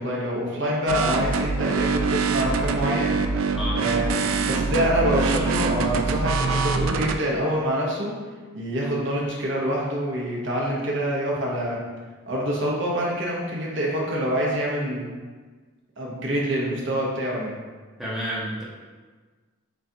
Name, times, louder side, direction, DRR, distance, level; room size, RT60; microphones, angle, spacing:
voice 1, 0.0-3.2 3.7-8.1 8.5-11.8 12.3-15.1 16.0-17.5, equal, 60° right, -4 dB, 0.8 m, -26 dB
sound 1, 0.9-7.2, right 4 dB, 85° right, 0.3 m, -24 dB
voice 2, 18.0-18.6, equal, ahead, -9 dB, 0.8 m, -30 dB
6.3 x 2.4 x 2.8 m, 1.4 s
head